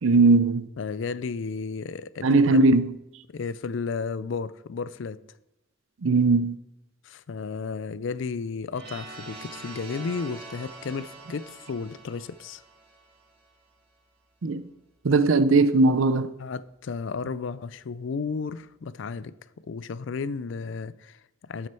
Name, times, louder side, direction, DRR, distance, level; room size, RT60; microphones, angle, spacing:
voice 1, 0.0-0.7 2.2-2.9 6.0-6.5 14.4-14.6 15.0-16.3, right 3 dB, 75° right, 0.6 m, -19 dB
voice 2, 0.8-2.6 3.3-5.2 7.0-12.6 16.4-19.4 19.7-21.7, left 5 dB, 65° left, 0.4 m, -33 dB
sound 1, 8.7-13.6, right 3 dB, 55° right, 1.9 m, -44 dB
12.0 x 6.5 x 4.4 m
head